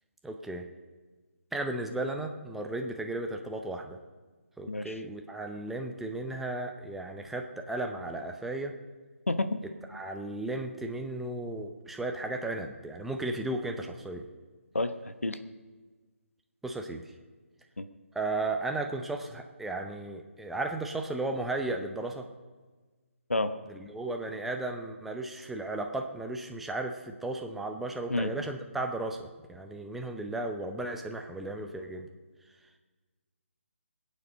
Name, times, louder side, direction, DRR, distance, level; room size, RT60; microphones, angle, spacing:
voice 1, 0.2-0.7 1.5-4.0 4.6-8.7 9.9-14.3 16.6-17.1 18.1-22.3 23.7-29.2 29.5-32.1, right 2 dB, 5° right, 3 dB, 0.7 m, -35 dB
voice 2, 9.3-9.6 14.7-15.4 17.8-17.9 23.3-23.5 28.1-28.3, left 2 dB, 75° left, 10 dB, 1.0 m, -29 dB
20.5 x 8.8 x 5.2 m, 1.4 s
figure-of-eight pair, 145°, 7 cm